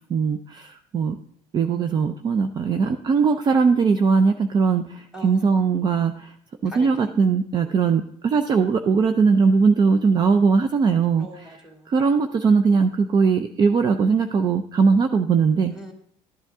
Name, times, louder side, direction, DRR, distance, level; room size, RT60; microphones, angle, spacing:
voice 1, 0.1-1.2 1.5-6.3 6.6-11.3 11.9-15.7, right 5 dB, 35° right, 8 dB, 0.5 m, -20 dB
voice 2, 5.1-5.5 6.6-7.1 11.2-11.9 15.7-15.9, right 1 dB, 5° right, 2 dB, 2.3 m, -41 dB
12.5 x 8.0 x 3.6 m, 0.63 s
cardioid pair, 115°, 12 cm